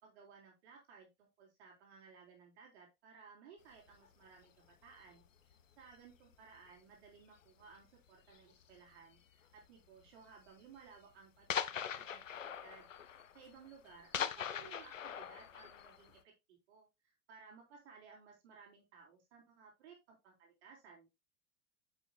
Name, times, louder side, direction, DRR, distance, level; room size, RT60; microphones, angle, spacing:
voice 1, 0.0-21.1, right 5 dB, 60° right, 0 dB, 3.7 m, -59 dB
sound 1, 3.9-4.1 4.8-5.3 5.5-6.0 6.3-6.6 7.0-7.1 7.4-7.5 8.3-8.7 9.6-9.7 10.0-10.1 10.5-10.6 10.9-11.0 11.5-16.2, left 8 dB, 80° left, 0.7 m, -42 dB
9.6 x 6.9 x 2.3 m, 0.22 s
figure-of-eight pair, 85°, 37 cm